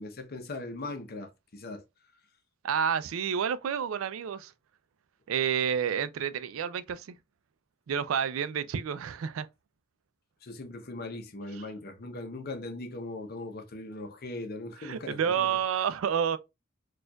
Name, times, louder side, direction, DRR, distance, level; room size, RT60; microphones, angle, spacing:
voice 1, 0.0-1.8 10.4-15.6, left 2 dB, 50° left, 0.7 m, -39 dB
voice 2, 2.6-4.5 5.3-7.1 7.9-9.5 14.8-16.4, right 8 dB, 80° right, 0.4 m, -29 dB
4.3 x 2.4 x 2.3 m
head